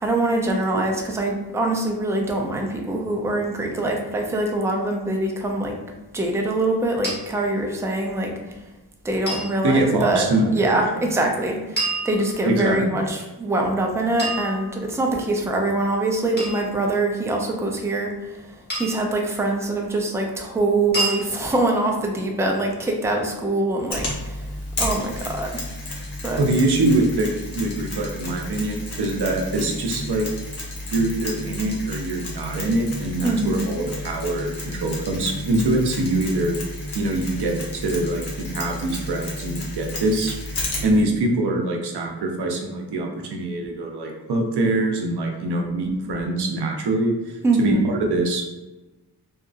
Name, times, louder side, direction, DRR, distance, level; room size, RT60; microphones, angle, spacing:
voice 1, 0.0-5.8 6.1-8.6 9.0-24.5 24.8-25.5 26.2-26.4 33.2-33.7 47.4-47.9, right 2 dB, 10° right, 1 dB, 0.3 m, -24 dB
sound 1, 7.0-7.2 9.3-9.5 11.8-12.7 14.2-15.1 16.4-16.7 18.7-19.1 20.9-21.2, right 2 dB, 25° left, 1.0 m, -28 dB
voice 2, 9.6-11.1 12.4-13.0 26.4-27.3 27.5-30.3 30.9-36.5 36.9-40.3 40.8-48.4, right 2 dB, 75° right, 2 dB, 0.6 m, -24 dB
Mechanisms, 23.9-41.0, left 1 dB, 70° left, 0.9 m, -32 dB
2.8 x 2.4 x 2.4 m, 1.1 s
wide cardioid pair, 100°, 40 cm